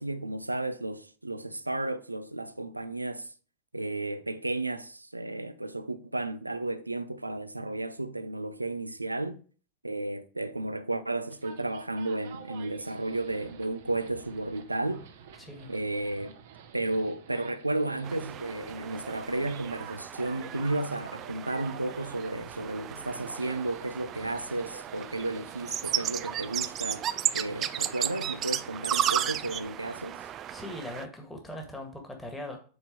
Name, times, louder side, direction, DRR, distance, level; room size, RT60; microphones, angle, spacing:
voice 1, 0.0-3.3 3.7-9.4 9.8-15.0 15.7-16.3 16.7-27.1 27.3-30.2, right 2 dB, 85° right, 0.5 m, -33 dB
sound 1, 11.3-27.7, right 8 dB, 55° right, 0.8 m, -49 dB
voice 2, 15.4-15.7 30.5-32.6, left 1 dB, 10° left, 1.8 m, -40 dB
sound 2, 18.0-31.0, right 10 dB, 30° right, 0.4 m, -34 dB
8.1 x 4.4 x 4.5 m
figure-of-eight pair, 90°, 0 cm